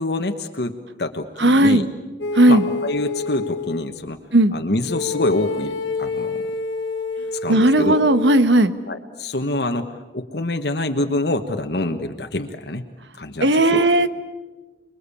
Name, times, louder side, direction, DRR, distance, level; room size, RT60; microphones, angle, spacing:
voice 1, 0.0-1.9 2.5-4.2 4.5-6.4 7.4-8.0 8.9-12.8 13.2-13.9, left 2 dB, 65° left, 5 dB, 1.3 m, -26 dB
voice 2, 1.4-1.9 2.3-2.6 4.3-4.5 7.5-8.7 13.4-14.1, right 1 dB, 85° right, 11 dB, 1.3 m, -15 dB
sound 1, 2.2-3.9 4.9-8.5, left 3 dB, 90° left, 1.9 m, -28 dB
30.0 x 22.0 x 8.6 m, 1.2 s
head